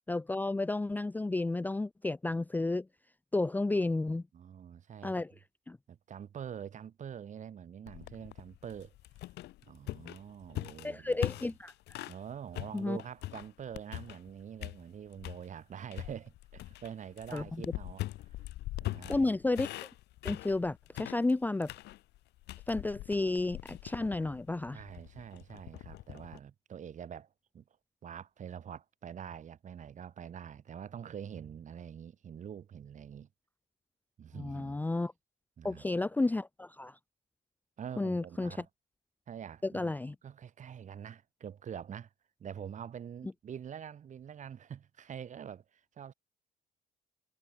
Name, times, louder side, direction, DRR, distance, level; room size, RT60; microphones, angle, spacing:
voice 1, 0.1-2.9 3.3-4.2 5.0-5.3 5.7-5.8 10.8-12.0 12.7-13.0 17.3-17.6 19.1-19.7 20.2-21.7 22.7-24.8 34.3-35.1 35.6-37.0 38.0-38.6 39.6-40.1, left 2 dB, 10° left, 0.6 m, -32 dB
voice 2, 4.3-5.2 5.9-8.9 9.6-11.5 12.1-18.0 18.8-19.4 24.0-24.4 24.7-27.3 27.5-27.6 28.0-33.3 34.2-34.8 35.6-35.9 37.8-38.7 39.3-39.9 40.2-42.1 42.4-46.1, right 8 dB, 45° right, 4.7 m, -45 dB
sound 1, 7.9-12.2 12.5-14.3 14.6-15.4 15.9-26.4, left 17 dB, 80° left, 3.1 m, -42 dB
cardioid pair, 110°, 17 cm